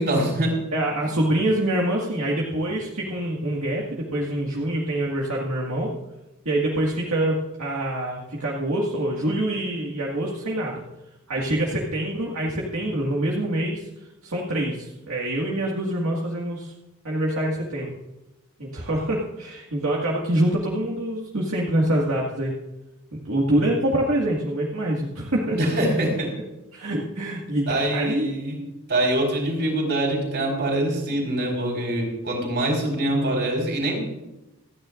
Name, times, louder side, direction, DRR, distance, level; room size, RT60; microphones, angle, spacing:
voice 1, 0.0-0.6 25.5-26.3 27.7-34.0, right 1 dB, 55° right, 0 dB, 4.4 m, -24 dB
voice 2, 0.7-5.9 6.5-10.8 11.3-13.9 14.2-16.7 17.0-17.9 18.6-22.6 23.1-25.6 26.7-28.3, right 1 dB, 70° right, -3 dB, 2.0 m, -25 dB
27.5 x 9.9 x 2.5 m, 0.97 s
head